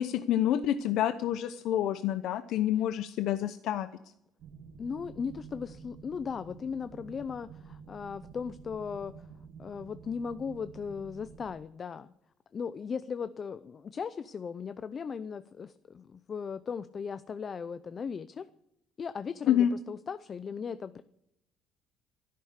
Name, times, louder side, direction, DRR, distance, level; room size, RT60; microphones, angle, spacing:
voice 1, 0.0-3.9 19.5-19.7, left 11 dB, 65° left, 11 dB, 0.8 m, -28 dB
sound 1, 4.4-11.5, right 6 dB, 60° right, 1.9 m, -50 dB
voice 2, 4.8-9.3 9.6-12.1 12.5-18.5 19.0-21.0, left 6 dB, 30° left, 13 dB, 0.5 m, -37 dB
13.0 x 11.5 x 8.0 m, 0.80 s
cardioid pair, 145°, 0 cm